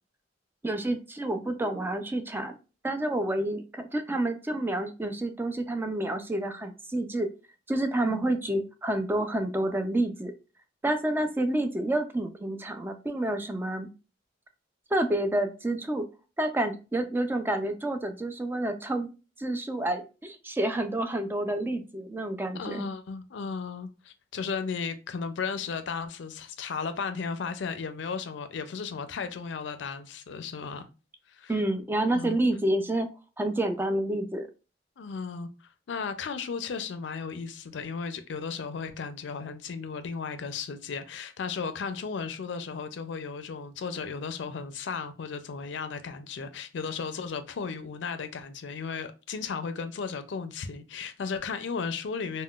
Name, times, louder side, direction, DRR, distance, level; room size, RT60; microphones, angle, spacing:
voice 1, 0.6-2.6 2.8-7.3 7.7-10.3 10.8-13.9 14.9-16.1 16.4-19.1 19.4-22.9 31.5-33.1 33.4-34.5, right 1 dB, 10° right, 0.3 m, -29 dB
voice 2, 22.5-30.9 31.3-31.5 32.1-32.4 35.0-35.5 35.9-52.4, left 5 dB, 70° left, 0.4 m, -35 dB
3.7 x 2.1 x 2.3 m
head